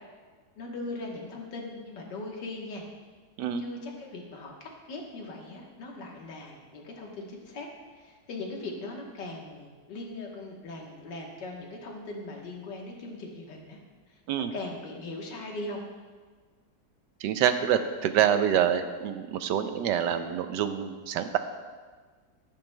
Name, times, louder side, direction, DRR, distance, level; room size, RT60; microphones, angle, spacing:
voice 1, 0.6-2.9 3.6-13.8 14.1-14.2 14.5-15.8, left 2 dB, 85° left, 0 dB, 1.9 m, -40 dB
voice 2, 17.2-21.4, right 9 dB, 85° right, 9 dB, 1.2 m, -26 dB
11.5 x 11.0 x 2.2 m, 1.5 s
omnidirectional pair, 1.9 m